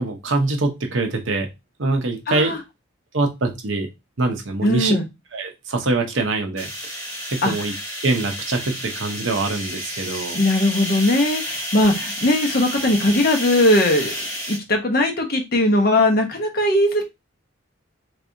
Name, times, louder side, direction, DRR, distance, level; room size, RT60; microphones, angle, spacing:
voice 1, 0.0-1.5 1.8-2.6 3.1-3.9 4.2-4.9 5.3-6.7 7.3-7.7 8.0-10.4, right 2 dB, 65° right, 3 dB, 0.8 m, -23 dB
voice 2, 2.3-2.6 4.6-5.0 7.4-7.5 10.3-14.1 14.5-17.0, left 1 dB, 45° left, 3 dB, 0.8 m, -19 dB
sound 1, 6.6-14.6, equal, 15° left, 2.1 m, -31 dB
3.3 x 3.3 x 2.6 m, 0.22 s
head